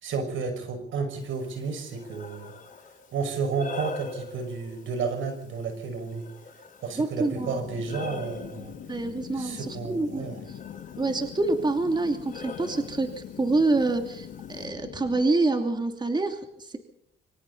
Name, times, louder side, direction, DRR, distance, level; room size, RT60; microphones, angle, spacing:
voice 1, 0.0-2.5 3.1-6.3 6.8-8.7 9.3-10.4, right 5 dB, 80° right, 6 dB, 5.8 m, -32 dB
Breathing, 1.2-14.7, left 4 dB, 45° left, 5.6 m, -44 dB
voice 2, 7.0-7.6 8.9-10.6 11.0-16.8, right 2 dB, 20° right, 5 dB, 2.8 m, -27 dB
Ventilation Atmosphere, 7.3-15.2, left 9 dB, 70° left, 1.9 m, -42 dB
25.0 x 25.0 x 4.1 m, 0.71 s
cardioid pair, 90°, 20 cm